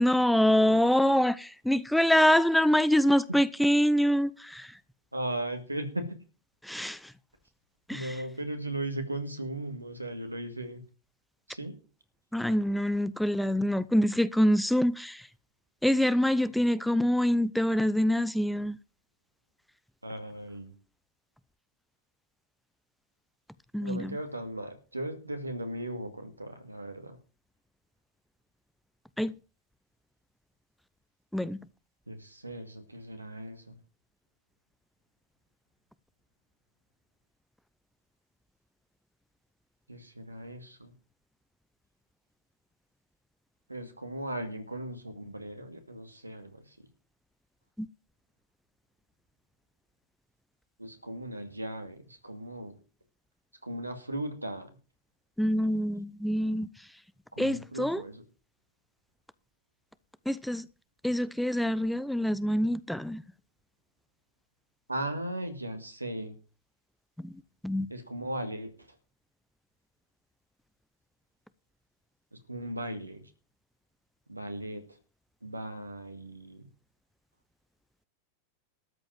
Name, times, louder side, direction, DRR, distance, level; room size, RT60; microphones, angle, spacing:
voice 1, 0.0-4.7 6.6-7.0 7.9-8.1 12.3-15.2 15.8-18.8 23.7-24.2 29.2-29.3 31.3-31.6 47.8-47.9 55.4-56.7 57.4-58.0 60.3-60.7 61.0-63.2 67.2-67.3 67.6-67.9, equal, ahead, 0.6 m, -25 dB
voice 2, 5.1-6.1 7.9-10.8 11.5-11.8 20.0-20.7 23.8-27.2 32.1-33.8 39.9-40.9 43.7-46.9 50.8-52.7 53.6-54.7 57.3-58.2 64.9-66.3 67.9-68.7 72.3-73.2 74.3-75.0 75.4-76.7, right 1 dB, 85° right, 2.3 m, -37 dB
13.5 x 5.2 x 9.2 m
figure-of-eight pair, 90°, 0 cm